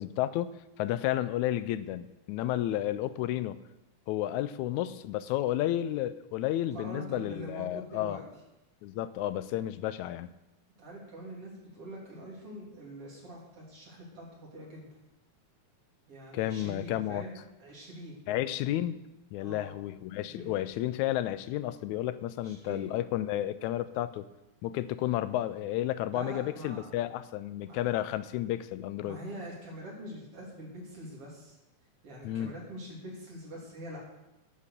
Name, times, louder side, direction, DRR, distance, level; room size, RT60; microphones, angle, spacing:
voice 1, 0.0-3.6 4.1-8.2 8.8-10.3 16.3-17.2 18.3-19.0 19.3-24.3 24.6-29.2 32.2-32.5, left 13 dB, 85° left, 14 dB, 2.0 m, -32 dB
voice 2, 6.7-8.2 10.8-14.9 16.1-18.2 19.4-19.8 20.1-20.5 22.4-22.9 26.1-27.2 27.6-27.8 29.0-31.6 32.0-34.0, right 1 dB, 50° right, -4 dB, 4.1 m, -44 dB
9.9 x 8.3 x 6.7 m, 0.94 s
omnidirectional pair, 3.3 m